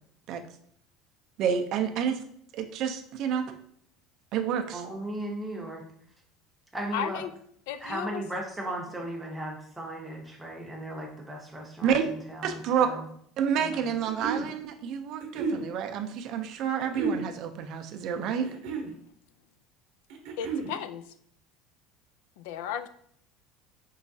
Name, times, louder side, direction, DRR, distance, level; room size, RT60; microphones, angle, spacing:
voice 1, 1.4-2.2 2.5-3.5 4.3-4.8 11.8-12.0 12.4-12.9 13.4-18.5, right 8 dB, 40° right, 6 dB, 0.4 m, -29 dB
voice 2, 4.7-5.8 6.7-7.2 7.8-13.0 13.6-13.8, right 1 dB, 5° right, -1 dB, 0.7 m, -36 dB
voice 3, 6.9-7.3 7.7-8.2 20.4-21.0 22.4-22.9, left 9 dB, 80° left, 11 dB, 0.3 m, -34 dB
sound 1, 13.7-14.5 15.2-15.6 16.8-17.3 18.3-18.9 20.1-20.7, right 4 dB, 60° right, 0.8 m, -32 dB
4.5 x 3.1 x 2.6 m, 0.66 s
cardioid pair, 175°, 0 cm